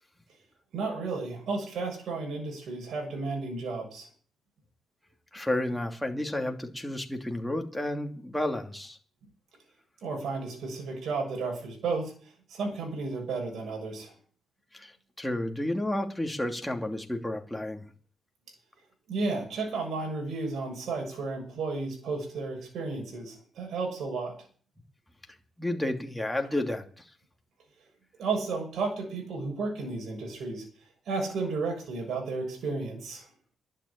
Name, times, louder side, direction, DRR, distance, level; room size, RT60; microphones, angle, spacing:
voice 1, 0.7-4.1 10.0-12.1 12.5-14.1 19.1-24.3 28.2-30.7 31.1-33.2, right 3 dB, 65° right, 1 dB, 6.9 m, -33 dB
voice 2, 5.3-9.0 14.7-17.8 25.6-27.0, left 1 dB, 5° left, 3 dB, 2.8 m, -31 dB
11.5 x 9.9 x 8.7 m, 0.42 s
cardioid pair, 90°, 0 cm